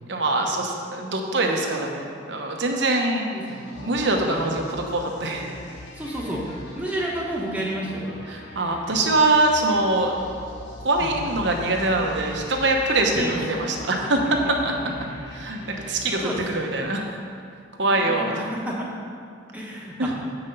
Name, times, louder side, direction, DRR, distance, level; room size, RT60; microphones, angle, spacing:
voice 1, 0.1-3.3 3.8-5.5 8.3-10.1 10.8-14.7 15.3-17.2 17.8-18.3 20.0-20.1, right 2 dB, 65° right, 2 dB, 1.0 m, -23 dB
voice 2, 3.3-3.7 4.3-4.4 5.9-6.4 6.7-8.1 11.0-11.3 13.1-13.4 13.8-13.9 16.2-16.8 17.8-18.9 19.5-20.1, right 1 dB, 10° right, -4 dB, 1.2 m, -31 dB
sound 1, 3.4-17.1, left 1 dB, 65° left, 1.3 m, -41 dB
7.9 x 5.7 x 5.4 m, 2.2 s
head